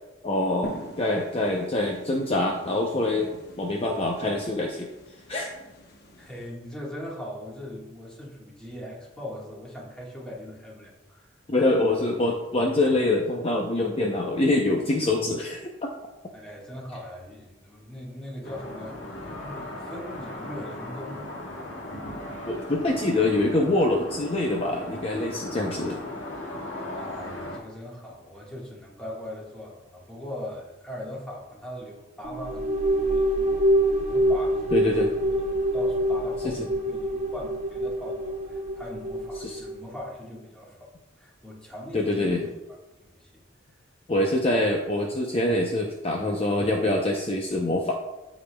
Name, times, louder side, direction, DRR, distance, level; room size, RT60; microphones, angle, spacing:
voice 1, 0.2-4.9 5.3-5.5 11.5-15.7 22.5-26.0 34.7-35.1 39.4-39.6 41.9-42.4 44.1-47.9, left 2 dB, 30° left, 1 dB, 0.6 m, -25 dB
sound 1, 0.6-6.5, left 1 dB, 55° left, 0.9 m, -45 dB
voice 2, 6.2-11.3 16.3-21.2 26.9-33.5 34.1-40.9 41.2-42.5 43.0-43.4, left 1 dB, 5° left, -4 dB, 1.5 m, -40 dB
sound 2, 18.4-27.6, left 1 dB, 85° left, 1.9 m, -37 dB
sound 3, 32.2-39.8, right 1 dB, 35° right, 1.0 m, -25 dB
14.0 x 5.0 x 2.3 m, 1.0 s
head